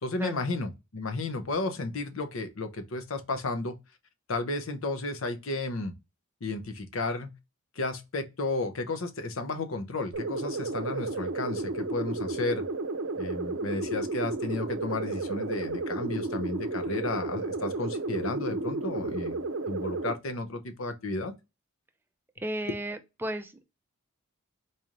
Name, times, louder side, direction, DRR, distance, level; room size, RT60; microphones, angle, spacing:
voice 1, 0.0-3.8 4.3-5.9 6.4-7.3 7.8-12.6 13.2-19.4 19.7-21.3, left 2 dB, 65° left, 0.7 m, -33 dB
sound 1, 10.1-20.1, right 3 dB, 60° right, 0.6 m, -32 dB
voice 2, 22.4-23.6, right 1 dB, 10° right, 0.4 m, -34 dB
4.1 x 3.1 x 2.5 m
head